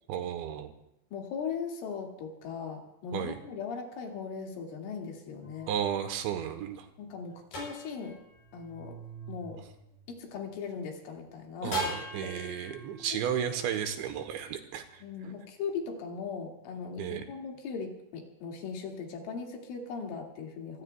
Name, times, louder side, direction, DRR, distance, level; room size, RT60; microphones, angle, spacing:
voice 1, 0.1-0.7 3.1-3.4 5.7-6.9 11.6-15.0 17.0-17.3, right 9 dB, 80° right, 7 dB, 3.2 m, -33 dB
voice 2, 1.1-5.7 7.0-8.2 8.5-9.0 9.3-9.6 10.1-12.0 15.0-20.8, left 5 dB, 90° left, 0 dB, 4.7 m, -39 dB
sound 1, 5.4-10.7 11.7-15.1, right 1 dB, 55° left, 8.3 m, -42 dB
25.5 x 21.0 x 2.3 m, 0.82 s
omnidirectional pair, 5.4 m